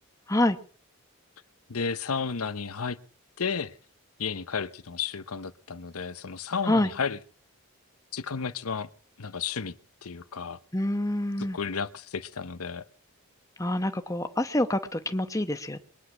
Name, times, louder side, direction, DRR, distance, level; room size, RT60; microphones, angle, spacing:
voice 1, 1.7-3.0 3.4-3.8 4.2-7.2 8.1-8.9 9.2-10.6 11.4-12.8, left 5 dB, 90° left, 0.9 m, -32 dB
voice 2, 10.7-11.6 13.6-15.8, left 1 dB, 15° left, 1.0 m, -26 dB
22.5 x 10.0 x 6.1 m
head